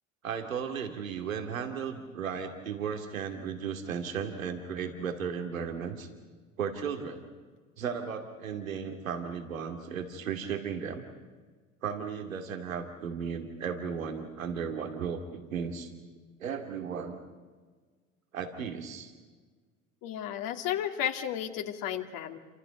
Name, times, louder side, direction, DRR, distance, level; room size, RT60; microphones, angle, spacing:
voice 1, 0.2-6.1 6.6-7.2 7.8-11.0 11.8-15.9 16.4-17.2 18.3-19.1, right 7 dB, 85° right, 5 dB, 2.7 m, -35 dB
voice 2, 20.0-22.4, left 10 dB, 55° left, 5 dB, 2.7 m, -33 dB
29.0 x 27.0 x 5.3 m, 1.4 s
hypercardioid pair, 70°, 39 cm